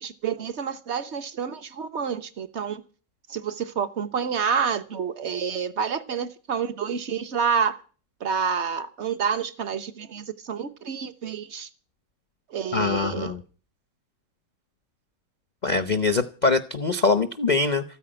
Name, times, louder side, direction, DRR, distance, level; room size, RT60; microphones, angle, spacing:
voice 1, 0.0-2.8 3.3-7.8 8.2-11.7 12.5-13.3, right 6 dB, 45° right, 1.1 m, -28 dB
voice 2, 12.7-13.4 15.6-17.8, left 3 dB, 40° left, 0.6 m, -23 dB
14.0 x 9.4 x 8.8 m
omnidirectional pair, 1.9 m